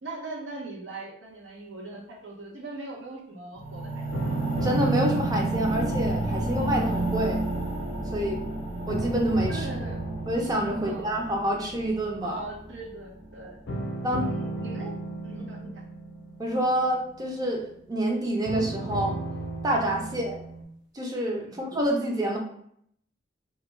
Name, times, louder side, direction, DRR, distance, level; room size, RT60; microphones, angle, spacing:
voice 1, 0.0-4.1 9.5-10.0 10.8-11.1 12.2-13.6 14.2-14.9 15.2-15.8 20.0-20.2 21.4-21.6, right 2 dB, 85° right, -2 dB, 0.6 m, -40 dB
sound 1, 3.5-13.6 14.3-14.4, right 2 dB, 40° right, 0.8 m, -31 dB
sound 2, 4.1-8.5 8.9-12.2 13.7-17.7 18.4-20.6, right 1 dB, 90° left, 0.4 m, -35 dB
voice 2, 4.6-7.4 8.1-8.4 8.9-9.7 10.3-12.4 14.0-14.3 16.4-19.1 19.6-20.4 20.9-22.4, right 1 dB, 20° right, 0 dB, 0.4 m, -27 dB
2.3 x 2.1 x 3.0 m, 0.68 s
head